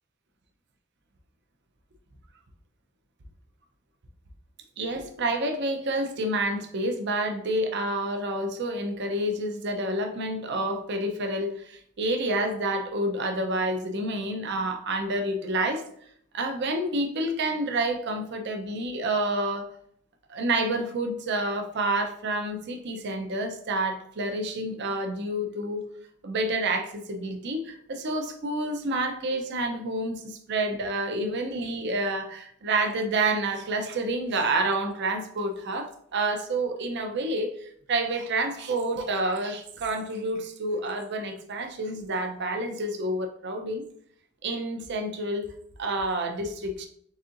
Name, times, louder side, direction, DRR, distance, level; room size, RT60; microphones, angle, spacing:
voice 1, 4.8-15.8 16.3-19.7 20.3-25.9 26.2-43.9 44.4-45.5 45.8-46.9, right 2 dB, 55° right, 5 dB, 0.6 m, -29 dB
4.2 x 3.6 x 2.5 m, 0.66 s
head